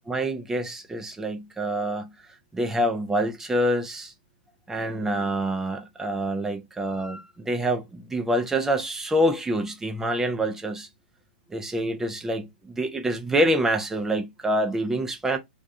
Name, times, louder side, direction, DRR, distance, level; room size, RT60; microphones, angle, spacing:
voice 1, 0.1-2.1 2.5-4.1 4.7-10.9 11.5-15.4, right 1 dB, 10° right, 0.5 m, -26 dB
2.3 x 2.3 x 2.6 m
hypercardioid pair, 115°, 5 cm